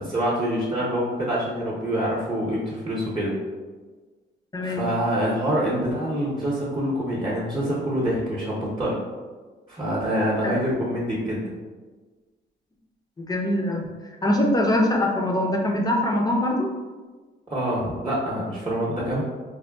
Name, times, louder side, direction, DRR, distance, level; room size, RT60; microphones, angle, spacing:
voice 1, 0.0-3.4 4.6-9.0 9.7-11.5 17.5-19.2, equal, 20° right, -7 dB, 0.7 m, -26 dB
voice 2, 4.5-4.9 10.4-10.5 13.2-13.9 14.2-16.7, left 1 dB, 20° left, 0 dB, 0.5 m, -23 dB
4.1 x 2.2 x 2.2 m, 1.4 s
cardioid pair, 90°, 20 cm